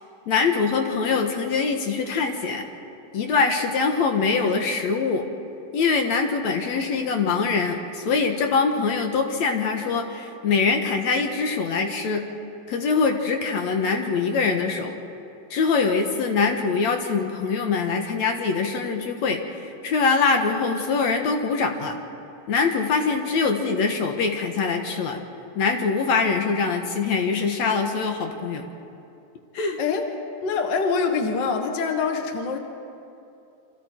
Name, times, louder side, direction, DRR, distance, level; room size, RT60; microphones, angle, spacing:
voice 1, 0.3-2.6 3.1-5.3 5.7-12.2 12.7-14.9 15.5-21.9 22.5-25.2 25.6-28.6 29.5-29.8, left 4 dB, 65° left, 4 dB, 2.5 m, -23 dB
voice 2, 29.8-30.1 30.4-32.6, left 5 dB, 45° left, 4 dB, 1.6 m, -24 dB
28.0 x 26.0 x 4.5 m, 2.7 s
omnidirectional pair, 3.6 m